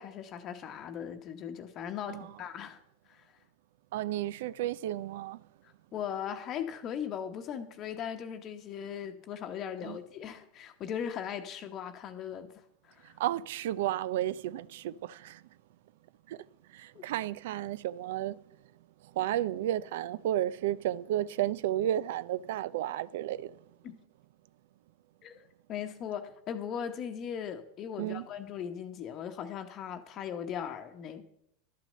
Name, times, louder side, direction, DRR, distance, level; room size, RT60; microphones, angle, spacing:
voice 1, 0.0-2.8 3.1-3.3 5.9-12.5 12.8-13.2 16.9-17.0 23.8-24.0 25.2-31.3, left 8 dB, 40° left, 0.9 m, -39 dB
voice 2, 3.9-5.4 9.8-10.0 13.0-15.4 16.3-16.4 16.7-18.4 19.1-23.6 28.0-28.3, right 12 dB, 70° right, 0.4 m, -32 dB
11.5 x 6.1 x 7.7 m
hypercardioid pair, 95°, 0 cm